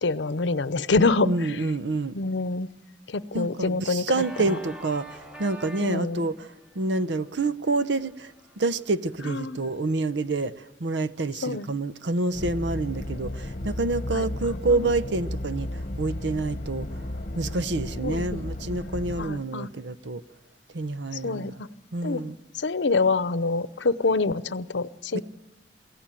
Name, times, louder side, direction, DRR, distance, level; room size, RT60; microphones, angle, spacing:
voice 1, 0.0-1.6 2.1-2.7 3.1-4.6 5.8-6.2 9.2-9.6 11.4-11.7 14.1-14.3 14.7-14.9 18.0-18.4 19.2-19.7 21.1-21.7 22.0-22.2 22.5-25.2, left 3 dB, 90° left, 0.8 m, -26 dB
voice 2, 1.2-2.2 3.3-6.5 6.7-17.1 17.3-20.2 20.7-21.5 21.9-22.4 25.1-25.2, right 3 dB, 80° right, 0.8 m, -28 dB
Organ, 4.1-8.9, equal, 5° right, 2.0 m, -45 dB
sound 1, 12.3-19.3, left 1 dB, 45° left, 1.4 m, -33 dB
23.0 x 17.0 x 9.0 m
head